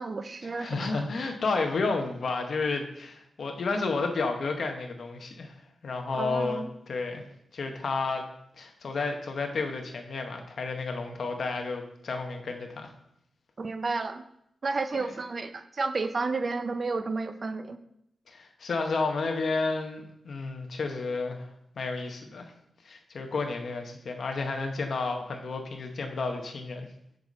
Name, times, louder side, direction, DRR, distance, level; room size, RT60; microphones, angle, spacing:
voice 1, 0.0-1.1 6.1-6.7 13.6-14.2 14.6-17.8, right 3 dB, 35° right, 10 dB, 0.5 m, -31 dB
voice 2, 0.6-5.5 5.8-7.2 7.5-8.2 8.6-12.9 14.9-15.1 18.3-21.5 21.8-22.5 22.8-26.9, left 3 dB, 55° left, 4 dB, 0.9 m, -31 dB
7.7 x 4.0 x 5.4 m, 0.76 s
wide cardioid pair, 155°, 0 cm